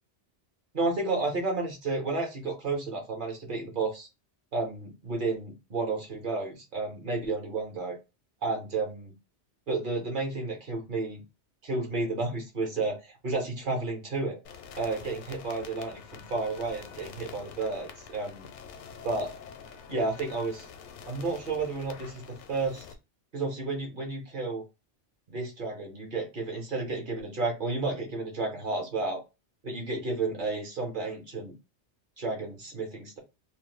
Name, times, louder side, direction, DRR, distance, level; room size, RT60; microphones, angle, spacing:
voice 1, 0.7-4.1 4.5-8.0 8.4-9.1 9.7-11.2 11.6-14.4 14.7-18.5 19.0-19.3 19.9-20.6 21.1-22.8 23.3-24.6 25.3-29.2 29.6-31.5 32.2-33.2, right 3 dB, 50° right, 2 dB, 1.0 m, -32 dB
sound 1, 14.4-22.9, left 6 dB, 80° left, 0.9 m, -47 dB
2.6 x 2.1 x 3.0 m, 0.26 s
omnidirectional pair, 1.2 m